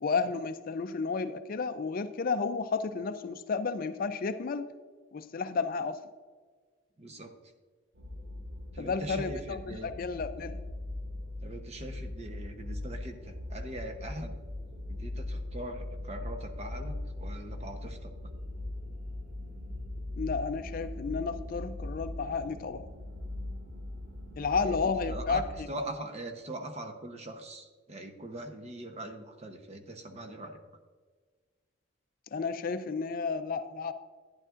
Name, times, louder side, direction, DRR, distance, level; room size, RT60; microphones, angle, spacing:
voice 1, 0.0-4.7 5.1-6.0 8.8-10.6 20.2-22.9 24.4-25.4 32.3-33.9, left 4 dB, 45° left, 11 dB, 0.4 m, -32 dB
voice 2, 7.0-7.3 8.7-9.9 11.4-14.4 14.8-18.1 24.6-30.6, right 1 dB, 35° right, 4 dB, 0.9 m, -42 dB
sound 1, 7.9-25.6, left 1 dB, 80° right, 2.1 m, -40 dB
11.5 x 10.5 x 2.5 m, 1.5 s
head